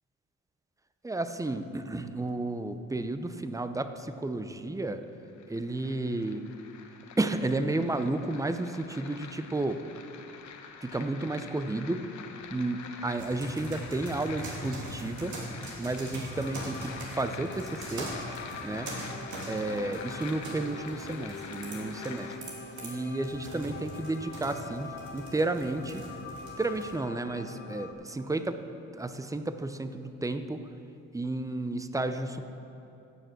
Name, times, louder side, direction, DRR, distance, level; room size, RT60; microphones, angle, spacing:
voice 1, 1.0-5.0 5.5-6.5 7.2-9.8 10.8-12.0 12.5-15.4 15.6-18.1 18.6-19.1 19.5-22.3 22.8-26.0 26.6-28.6 28.9-30.7 31.1-32.4, right 2 dB, 10° right, 9 dB, 0.6 m, -32 dB
sound 1, 5.0-22.4, left 6 dB, 70° left, 1.0 m, -46 dB
sound 2, 13.2-26.9, right 1 dB, 70° right, 3.0 m, -42 dB
sound 3, 15.9-27.9, left 4 dB, 35° left, 1.3 m, -45 dB
16.0 x 6.7 x 6.1 m, 2.9 s
cardioid pair, 90°, 30 cm